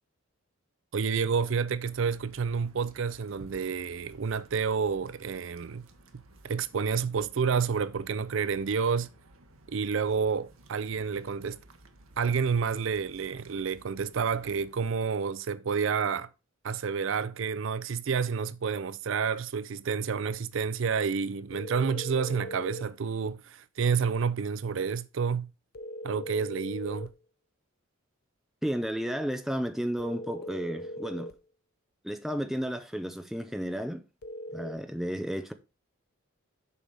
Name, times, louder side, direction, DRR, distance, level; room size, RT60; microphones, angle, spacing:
voice 1, 0.9-5.8 6.4-9.1 9.7-11.6 12.2-16.3 16.6-25.5 26.0-27.1, right 6 dB, 65° right, 0.4 m, -29 dB
sound 1, 1.8-15.0, right 2 dB, 80° right, 1.2 m, -56 dB
sound 2, 21.5-22.9 25.7-27.2 30.0-31.4 34.2-34.7, equal, 45° left, 0.6 m, -40 dB
voice 2, 28.6-31.3 32.0-34.0 34.5-35.5, equal, ahead, 0.6 m, -32 dB
7.0 x 4.8 x 5.4 m
head